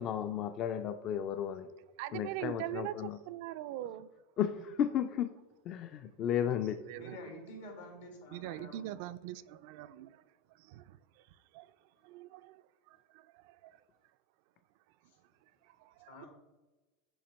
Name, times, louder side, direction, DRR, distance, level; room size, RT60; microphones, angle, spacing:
voice 1, 0.0-1.7 2.1-3.2 4.4-5.3 5.7-6.8, left 9 dB, 40° left, 9 dB, 0.3 m, -33 dB
voice 2, 2.0-4.1 4.5-5.0 6.3-7.4 8.3-10.2 10.5-11.3 11.5-11.7 12.0-13.8 15.6-16.2, right 14 dB, 65° right, 14 dB, 0.3 m, -44 dB
voice 3, 6.9-9.0 15.1-15.2 16.1-16.3, left 1 dB, 85° left, 2 dB, 1.8 m, -49 dB
7.1 x 2.9 x 5.2 m, 1.2 s
supercardioid pair, 120°, 0 cm